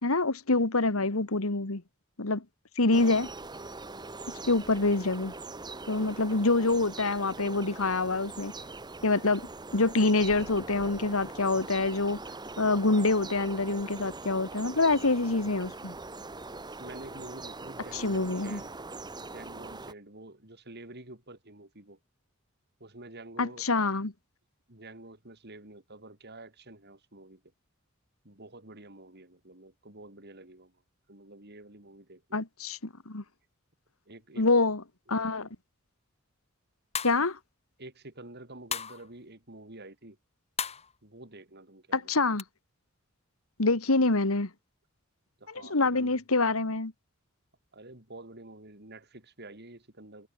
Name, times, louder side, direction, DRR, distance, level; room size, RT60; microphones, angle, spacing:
voice 1, 0.0-1.8 2.2-2.4 2.8-3.3 4.3-5.3 5.9-8.5 9.0-12.2 12.6-16.0 17.9-18.6 23.4-24.1 32.3-32.8 33.1-33.2 34.4-34.8 35.1-35.5 37.0-37.4 41.9-42.4 43.6-44.5 45.5-46.9, left 3 dB, 90° left, 2.0 m, -26 dB
sound 1, 2.9-19.9, right 3 dB, 20° right, 1.4 m, -42 dB
voice 2, 16.8-18.8 19.2-22.0 22.8-23.7 24.7-27.4 28.2-30.7 31.1-32.4 34.1-34.4 35.1-35.2 37.8-40.2 41.0-42.1 45.4-46.2 47.7-50.3, right 2 dB, 50° right, 5.1 m, -48 dB
sound 2, 36.9-37.4 38.7-39.1 40.6-40.9 42.4-42.5, left 7 dB, 30° left, 2.2 m, -34 dB
head